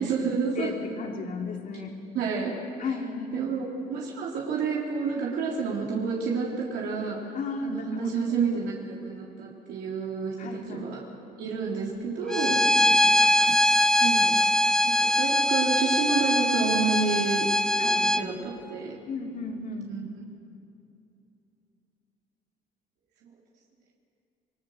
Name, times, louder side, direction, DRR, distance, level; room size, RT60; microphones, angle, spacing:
voice 1, 0.0-0.7 2.1-2.5 2.8-2.9 3.3-7.2 7.6-11.0 11.4-12.6 14.0-14.4 14.8-19.0 19.9-20.0, right 5 dB, 80° right, -4 dB, 3.6 m, -29 dB
voice 2, 0.6-1.9 2.8-3.6 7.3-8.3 10.4-10.9 12.5-13.0 17.8-18.4 19.1-19.9, left 3 dB, 50° left, 1 dB, 3.6 m, -35 dB
Bowed string instrument, 12.3-18.2, left 1 dB, 5° left, 0.8 m, -22 dB
28.0 x 20.5 x 6.7 m, 2.7 s
cardioid pair, 110°, 17 cm